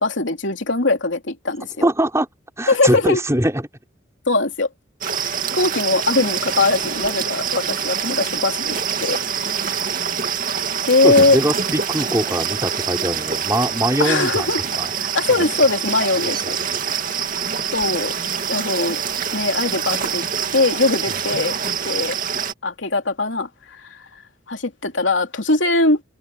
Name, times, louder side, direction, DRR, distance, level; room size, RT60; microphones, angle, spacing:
voice 1, 0.0-1.9 2.7-3.2 4.3-4.7 5.2-9.6 10.9-11.4 14.0-14.6 15.0-16.6 17.7-18.1 18.5-19.0 19.3-20.2 20.5-21.5 21.8-22.2 22.6-24.2 24.5-26.0, left 3 dB, 80° left, 3.0 m, -21 dB
voice 2, 1.8-2.3 2.6-3.7 11.0-14.9 15.4-15.5 16.4-16.7, right 1 dB, 15° right, 6.0 m, -22 dB
sound 1, 5.0-22.5, right 7 dB, 45° right, 2.4 m, -25 dB
head